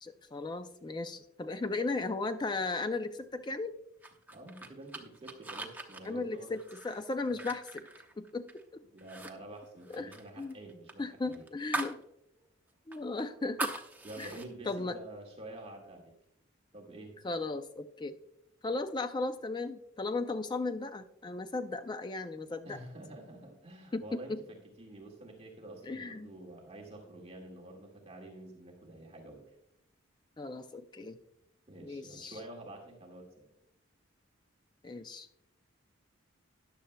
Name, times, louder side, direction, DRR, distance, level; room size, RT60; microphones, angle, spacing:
voice 1, 0.0-3.7 6.0-7.8 8.2-8.5 8.7-8.8 9.9-10.1 10.4-10.6 11.0-12.0 12.9-13.8 14.2-14.3 14.6-15.0 17.2-18.2 18.6-22.8 23.9-24.4 25.8-26.3 30.4-31.2 31.8-32.3 34.8-35.3, left 3 dB, 20° left, 10 dB, 0.3 m, -36 dB
sound 1, 4.0-8.6 9.0-9.3 9.6-12.0 12.4-12.5 12.9-14.5, right 2 dB, 10° right, 0.8 m, -41 dB
voice 2, 4.3-6.5 7.2-7.5 8.9-11.4 14.0-16.1 16.7-17.1 22.6-29.5 31.7-33.5, right 1 dB, 30° right, -1 dB, 1.8 m, -48 dB
13.5 x 10.5 x 2.2 m, 0.78 s
head